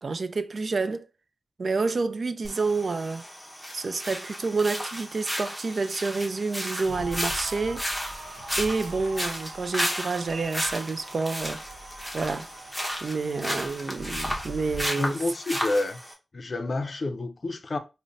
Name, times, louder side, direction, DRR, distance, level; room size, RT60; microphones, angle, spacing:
voice 1, 0.0-1.1 1.6-3.3 3.7-7.9 8.6-11.6 12.1-12.5 13.0-15.2, right 4 dB, 60° right, 0.3 m, -29 dB
sound 1, 2.4-16.1, equal, 5° right, 0.9 m, -34 dB
sound 2, 6.8-14.9, right 1 dB, 85° right, 0.9 m, -41 dB
voice 2, 15.0-16.0 16.3-17.8, left 2 dB, 50° left, 0.5 m, -29 dB
5.1 x 2.1 x 2.5 m
wide cardioid pair, 90°, 0 cm